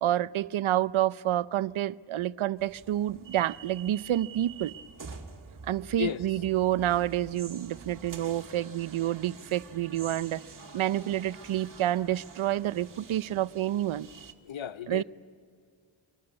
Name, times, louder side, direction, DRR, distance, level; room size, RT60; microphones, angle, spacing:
voice 1, 0.0-4.7 5.6-10.4 10.7-14.1 14.9-15.0, right 13 dB, 75° right, 0.6 m, -28 dB
sound 1, 2.6-14.3, right 5 dB, 40° right, 1.7 m, -47 dB
voice 2, 14.4-15.0, left 10 dB, 70° left, 0.9 m, -33 dB
24.5 x 19.5 x 9.6 m
wide cardioid pair, 175°, 48 cm